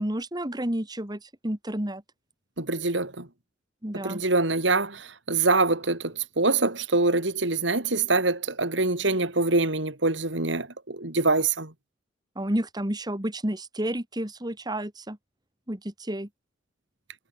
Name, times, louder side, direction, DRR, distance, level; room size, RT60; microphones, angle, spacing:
voice 1, 0.0-2.0 3.8-4.2 12.4-15.2 15.7-16.3, right 1 dB, 20° right, 2.2 m, -30 dB
voice 2, 2.6-3.3 3.9-11.7, right 3 dB, 80° right, 3.5 m, -25 dB
head